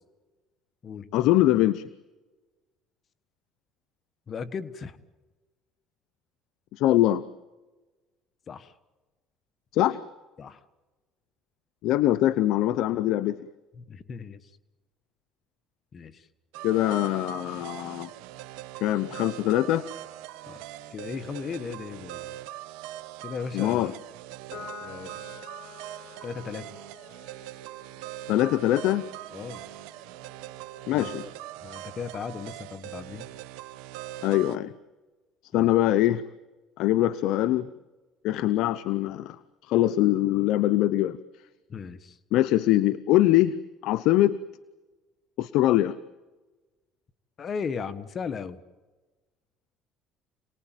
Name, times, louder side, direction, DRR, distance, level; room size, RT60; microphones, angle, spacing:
voice 1, 1.1-1.8 6.7-7.2 9.7-10.0 11.8-13.4 16.6-18.1 18.8-19.8 23.5-23.9 28.3-29.0 30.9-31.2 34.2-34.7 35.5-36.2 36.8-37.7 38.2-39.4 39.6-41.2 42.3-43.5 43.8-44.4 45.4-45.9, left 14 dB, 75° left, 15 dB, 0.8 m, -23 dB
voice 2, 4.3-5.0 8.5-8.7 10.4-10.6 13.7-14.5 15.9-16.3 20.5-20.6 20.9-22.3 23.2-23.9 24.8-25.2 26.2-26.7 29.3-29.6 30.9-31.3 31.6-33.3 35.5-35.7 41.7-42.2 47.4-48.6, left 6 dB, 40° left, 14 dB, 1.3 m, -36 dB
sound 1, 16.5-34.6, right 14 dB, 85° right, 1.2 m, -42 dB
Piano, 24.5-31.2, left 5 dB, 55° left, 7.7 m, -49 dB
28.0 x 19.5 x 9.1 m, 1.2 s
supercardioid pair, 95°, 0 cm